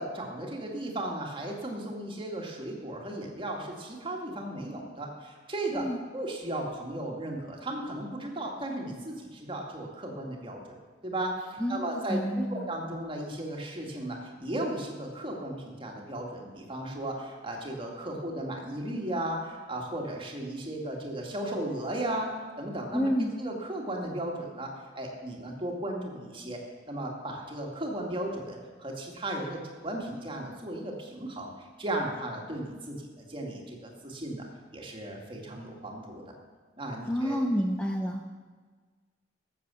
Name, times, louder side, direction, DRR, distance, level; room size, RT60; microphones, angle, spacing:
voice 1, 0.0-5.9 6.1-10.6 11.0-23.1 23.4-26.6 26.9-34.5 34.7-36.2 36.8-37.4, right 1 dB, 30° right, 0 dB, 2.2 m, -35 dB
voice 2, 11.6-12.7 22.9-23.3 37.1-38.2, equal, 5° left, 2 dB, 0.7 m, -29 dB
13.0 x 7.7 x 7.0 m, 1.5 s
head